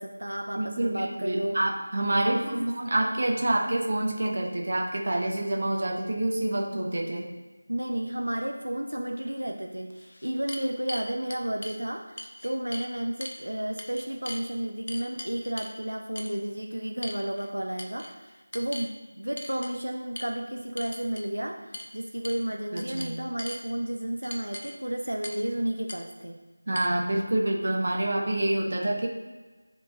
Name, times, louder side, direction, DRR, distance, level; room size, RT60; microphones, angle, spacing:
voice 1, 0.0-1.6 2.1-2.7 7.7-26.4, right 1 dB, 75° right, 2 dB, 0.6 m, -32 dB
voice 2, 0.6-7.3 22.7-23.1 26.7-29.1, right 1 dB, 40° right, 0 dB, 0.9 m, -27 dB
sound 1, 9.3-9.4 9.9-11.8 12.2-12.9 13.2-13.4 13.8-14.4 14.9-15.8 16.2-16.4 17.0-17.5 17.8-18.1 18.5-18.9 19.4-19.7 20.2-20.3 20.8-21.3 21.7-21.9 22.2-22.5 22.8-23.6 24.2-24.8 25.2-25.5 25.9-26.0 26.8-26.9, left 1 dB, 35° left, 0.5 m, -40 dB
9.6 x 3.7 x 2.8 m, 1.3 s
figure-of-eight pair, 170°, 0 cm